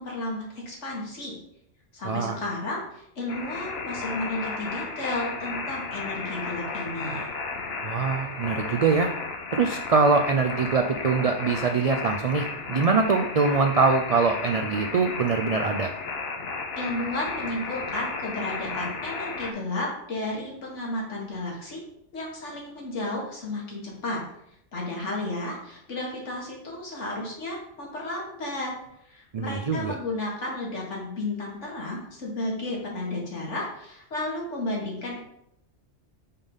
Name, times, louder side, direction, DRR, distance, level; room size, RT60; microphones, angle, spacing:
voice 1, 0.0-1.4 1.9-7.3 16.7-21.8 22.1-24.2 24.7-28.7 29.1-35.3, left 2 dB, 85° left, -2 dB, 2.0 m, -33 dB
voice 2, 2.0-2.4 7.8-9.1 9.5-15.9 29.3-29.9, right 4 dB, 65° right, 4 dB, 0.3 m, -23 dB
sound 1, 3.3-19.5, left 4 dB, 60° left, 1.0 m, -33 dB
5.7 x 3.5 x 5.4 m, 0.77 s
omnidirectional pair, 1.2 m